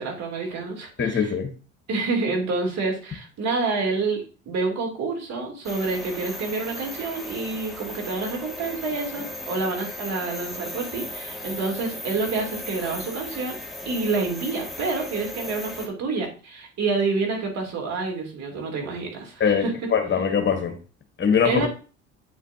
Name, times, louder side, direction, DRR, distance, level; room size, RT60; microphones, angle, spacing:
voice 1, 0.0-1.3 1.9-13.6 13.8-19.7 21.4-21.7, right 3 dB, 50° right, 3.0 m, -28 dB
voice 2, 1.0-1.5 19.4-20.7 21.2-21.7, left 6 dB, 30° left, 1.4 m, -22 dB
sound 1, 5.6-15.9, left 1 dB, ahead, 1.8 m, -36 dB
8.7 x 4.9 x 2.8 m
hypercardioid pair, 65°, 35 cm